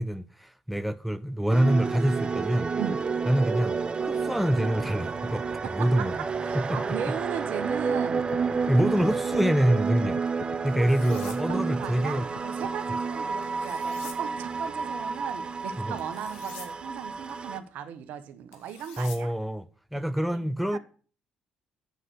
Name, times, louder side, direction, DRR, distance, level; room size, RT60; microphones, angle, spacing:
voice 1, 0.0-2.7 3.3-5.5 5.8-6.1 6.5-7.1 8.7-10.2 10.6-12.3 15.8-16.0 19.0-19.7 19.9-20.8, right 1 dB, ahead, 0.6 m, -26 dB
sound 1, 1.5-17.6, right 5 dB, 35° right, 0.7 m, -30 dB
voice 2, 5.6-8.3 11.0-19.3 20.3-20.5 20.7-20.8, right 9 dB, 65° right, 1.1 m, -37 dB
sound 2, 8.2-12.8, left 9 dB, 55° left, 0.7 m, -41 dB
sound 3, 10.7-11.4 13.4-14.2 16.0-16.7 18.5-19.2, left 6 dB, 75° left, 1.9 m, -46 dB
8.0 x 7.5 x 6.3 m
hypercardioid pair, 50°, 3 cm